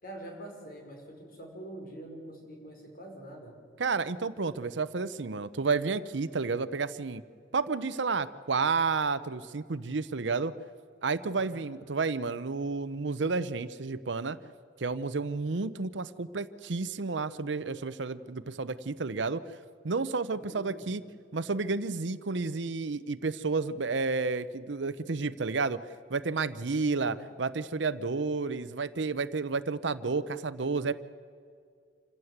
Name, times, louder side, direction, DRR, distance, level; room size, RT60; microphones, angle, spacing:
voice 1, 0.0-3.6 11.3-11.6 20.3-20.9 26.9-27.3, right 1 dB, 55° left, 2 dB, 5.2 m, -45 dB
voice 2, 3.8-7.2 7.5-10.5 11.0-14.4 14.8-19.4 19.8-21.0 21.3-25.8 26.1-30.9, right 4 dB, 70° right, 14 dB, 0.7 m, -31 dB
27.5 x 15.5 x 8.0 m, 2.2 s
head